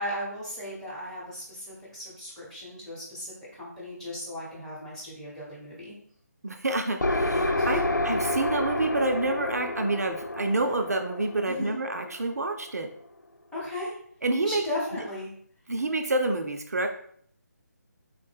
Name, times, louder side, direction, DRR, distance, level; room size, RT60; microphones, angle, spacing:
voice 1, 0.0-5.9 7.5-7.7 11.5-11.8 13.5-14.0 14.4-15.3, left 1 dB, 5° left, -7 dB, 0.8 m, -36 dB
voice 2, 6.4-12.9 14.2-14.6 15.7-16.9, right 2 dB, 60° right, 4 dB, 0.4 m, -28 dB
sound 1, 7.0-12.6, left 1 dB, 90° left, 0.4 m, -29 dB
3.7 x 2.1 x 3.3 m, 0.63 s
figure-of-eight pair, 150°, 10 cm